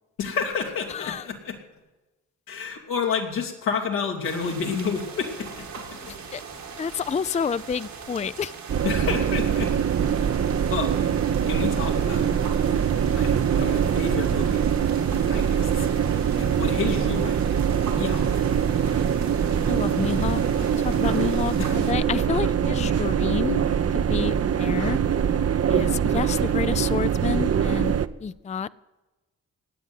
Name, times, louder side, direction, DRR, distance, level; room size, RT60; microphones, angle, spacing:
voice 1, 0.2-1.6 2.5-6.1 8.8-9.7 10.5-10.9 11.5-12.3 13.2-14.7 15.1-15.9 16.4-17.4 18.0-18.3 21.6-21.7, left 5 dB, 90° left, 2.7 m, -30 dB
voice 2, 0.9-1.3 6.1-6.4 6.8-8.5 19.7-20.4 20.7-23.6 23.9-25.0 25.7-27.9 28.2-28.7, left 6 dB, 20° left, 0.5 m, -29 dB
sound 1, 4.2-21.9, right 5 dB, 85° right, 3.5 m, -40 dB
sound 2, 8.7-28.1, right 8 dB, 45° right, 0.8 m, -23 dB
18.5 x 8.1 x 9.4 m
supercardioid pair, 45°, 34 cm